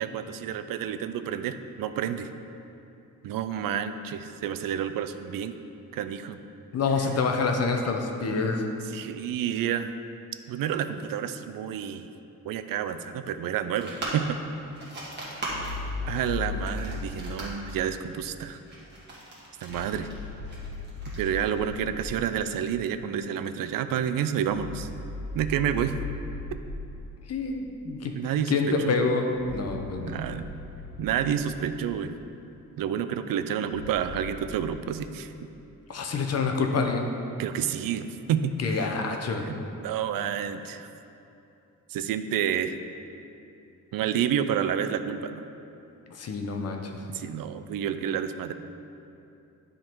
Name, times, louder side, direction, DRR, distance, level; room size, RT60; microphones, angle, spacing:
voice 1, 0.0-2.3 3.2-5.5 5.9-6.4 8.9-9.9 10.5-12.1 12.4-14.4 16.0-18.6 19.6-20.1 21.2-24.9 25.3-26.0 28.1-29.0 30.1-30.5 31.0-32.2 32.8-35.3 37.4-38.8 39.4-40.9 41.9-42.7 43.9-45.4 47.1-48.5, right 9 dB, 80° right, 10 dB, 0.5 m, -29 dB
voice 2, 6.7-8.7 27.3-28.1 28.5-30.1 35.9-37.1 38.6-39.4 46.1-47.0, left 4 dB, 50° left, 3 dB, 0.7 m, -27 dB
sound 1, 13.8-22.0, right 1 dB, 30° right, 1.7 m, -40 dB
sound 2, 15.5-17.8 19.7-22.2 24.5-27.1 29.3-31.9 33.7-34.4, left 3 dB, 70° left, 1.4 m, -37 dB
10.0 x 3.8 x 4.5 m, 2.8 s
wide cardioid pair, 155°, 33 cm